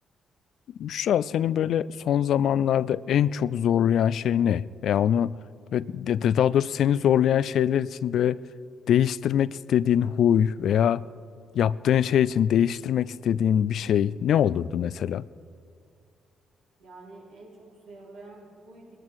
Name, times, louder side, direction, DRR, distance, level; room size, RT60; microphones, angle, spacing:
voice 1, 0.8-5.4 5.7-8.4 8.9-11.0 11.5-15.2, left 9 dB, 70° left, 18 dB, 0.3 m, -23 dB
voice 2, 16.8-18.9, right 2 dB, 90° right, -6 dB, 4.3 m, -47 dB
21.0 x 12.5 x 4.7 m, 2.3 s
supercardioid pair, 50°, 0 cm